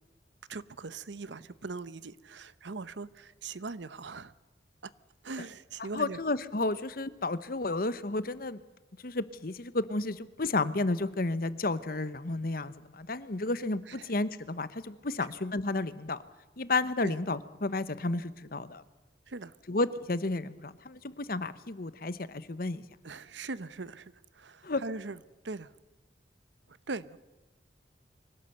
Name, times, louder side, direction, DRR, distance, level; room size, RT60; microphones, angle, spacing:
voice 1, 0.5-4.3 5.2-6.2 13.9-14.1 17.0-17.1 19.3-19.5 23.0-25.2 25.4-25.7 26.7-27.2, right 3 dB, 75° right, 0.8 m, -40 dB
voice 2, 5.9-8.6 9.0-16.2 16.6-18.8 19.7-22.8 24.6-24.8, left 2 dB, 50° left, 1.0 m, -32 dB
24.5 x 17.5 x 7.9 m
head